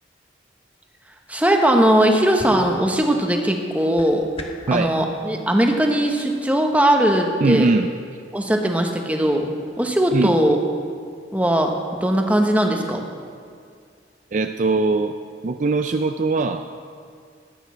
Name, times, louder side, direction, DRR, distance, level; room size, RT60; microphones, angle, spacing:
voice 1, 1.3-4.3 4.7-7.7 8.3-9.5 9.8-10.6 11.3-11.7 12.0-13.0, right 1 dB, 10° right, 2 dB, 1.1 m, -19 dB
sound 1, 2.3-4.8, left 1 dB, 30° left, 1.1 m, -40 dB
voice 2, 7.4-7.9 10.1-10.3 14.3-15.1 15.4-16.7, right 3 dB, 40° right, 7 dB, 0.4 m, -20 dB
13.5 x 9.2 x 6.2 m, 2.2 s
head